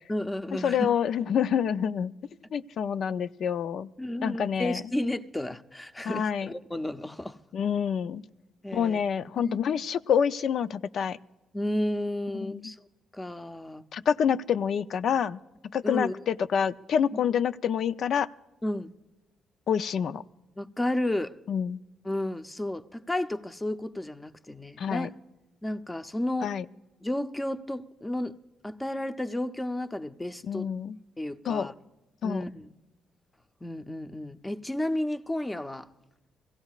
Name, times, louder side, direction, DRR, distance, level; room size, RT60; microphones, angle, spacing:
voice 1, 0.1-0.9 4.0-7.4 8.6-9.0 9.4-9.6 11.5-12.8 13.1-13.9 15.8-16.2 18.6-18.9 20.6-21.4 22.0-25.1 25.6-26.5 27.0-28.4 28.6-30.7 31.2-31.7 32.2-32.7 33.6-35.9, left 1 dB, 15° left, 0.7 m, -32 dB
voice 2, 0.6-2.1 2.5-3.9 4.2-4.8 6.0-6.5 7.5-8.2 8.7-11.2 12.5-12.7 13.9-15.4 15.7-18.3 19.7-20.2 21.5-21.8 24.8-25.1 26.4-26.6 30.5-31.0 31.5-31.7 32.2-32.4, left 8 dB, 65° left, 0.5 m, -27 dB
24.5 x 16.5 x 2.4 m
cardioid pair, 90°, 0 cm